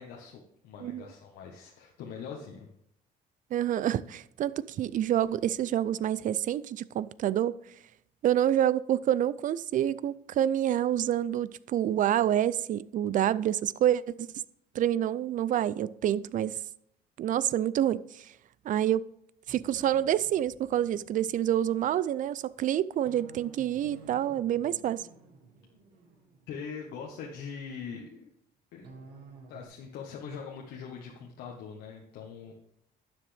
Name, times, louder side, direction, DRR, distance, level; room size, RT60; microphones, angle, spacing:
voice 1, 0.0-2.7 26.5-28.3 28.7-28.9 29.5-32.5, left 6 dB, 80° left, 1.3 m, -42 dB
voice 2, 3.5-7.6 8.2-14.3 14.7-16.6 17.2-18.3 18.7-19.1 19.5-25.0, right 11 dB, 50° right, 0.4 m, -27 dB
sound 1, 19.5-27.7 28.8-29.7, right 4 dB, 80° right, 1.7 m, -53 dB
12.0 x 7.7 x 3.4 m
cardioid pair, 110°, 17 cm